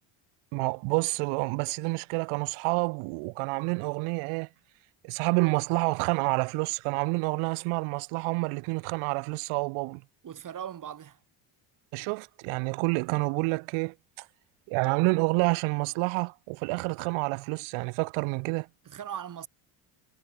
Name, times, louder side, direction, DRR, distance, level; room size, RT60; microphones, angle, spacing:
voice 1, 0.5-4.5 5.0-10.0 11.9-14.3 14.7-18.7, right 31 dB, 85° right, 2.2 m, -28 dB
voice 2, 10.2-11.2 18.8-19.5, right 9 dB, 40° right, 6.0 m, -39 dB
cardioid pair, 130°, 49 cm